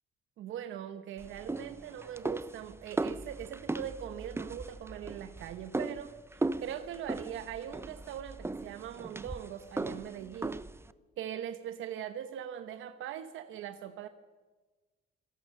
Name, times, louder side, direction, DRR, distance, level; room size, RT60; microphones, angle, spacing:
voice 1, 0.4-10.7 11.2-14.1, right 10 dB, 85° right, 9 dB, 1.1 m, -41 dB
sound 1, 1.2-10.9, right 2 dB, 10° right, 0.7 m, -38 dB
26.5 x 17.5 x 6.5 m, 1.3 s
cardioid pair, 90°, 20 cm